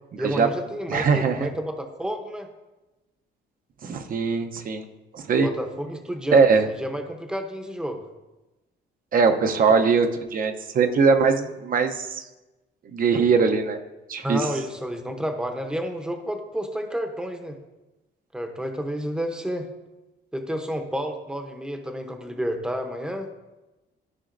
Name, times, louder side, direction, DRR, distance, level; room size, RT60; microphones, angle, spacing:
voice 1, 0.2-2.5 5.4-8.0 14.2-17.6 18.3-19.7 20.3-23.3, equal, 5° right, 4 dB, 0.7 m, -30 dB
voice 2, 0.9-1.5 3.8-4.8 5.1-5.5 6.3-6.7 9.1-12.2 12.9-13.8 14.1-14.4, right 5 dB, 50° right, 6 dB, 0.7 m, -21 dB
13.0 x 4.9 x 2.5 m, 1.1 s
cardioid pair, 135°, 19 cm